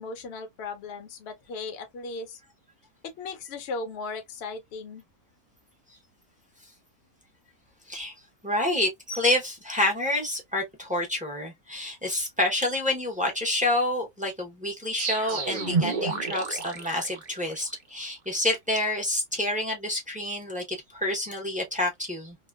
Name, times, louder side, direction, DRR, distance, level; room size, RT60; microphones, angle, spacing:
voice 1, 0.0-2.4 3.2-5.0, left 3 dB, 55° left, 0.9 m, -37 dB
voice 2, 8.4-22.4, left 1 dB, 10° right, 0.6 m, -28 dB
sound 1, 15.0-17.8, right 4 dB, 50° right, 0.5 m, -30 dB
2.9 x 2.1 x 2.3 m
omnidirectional pair, 1.6 m